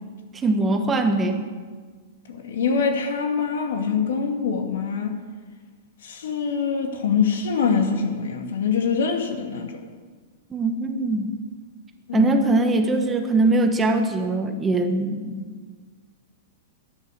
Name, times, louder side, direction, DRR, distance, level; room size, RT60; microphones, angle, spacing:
voice 1, 0.4-1.4 10.5-11.3 12.1-15.5, right 2 dB, 15° right, 5 dB, 1.2 m, -21 dB
voice 2, 2.3-5.2 6.0-9.8 12.1-12.3, left 6 dB, 80° left, 4 dB, 2.2 m, -24 dB
12.5 x 10.5 x 6.8 m, 1.5 s
hypercardioid pair, 145°, 0 cm